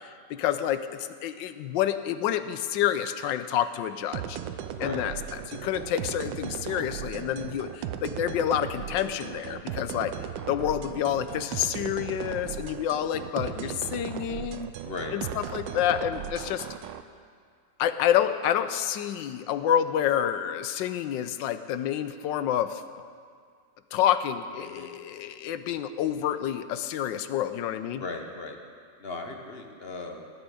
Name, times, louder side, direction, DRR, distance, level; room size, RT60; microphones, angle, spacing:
voice 1, 0.0-4.4 4.8-10.2 10.5-14.7 15.1-16.7 17.8-22.8 23.9-28.0, left 10 dB, 85° left, 11 dB, 1.3 m, -28 dB
sound 1, 4.1-17.0, right 10 dB, 80° right, 1.3 m, -37 dB
voice 2, 4.7-5.1 13.4-13.8 14.8-15.1 24.6-24.9 27.9-28.6 29.0-30.3, left 3 dB, 40° left, 3 dB, 1.1 m, -38 dB
19.0 x 9.1 x 4.9 m, 2.1 s
omnidirectional pair, 2.0 m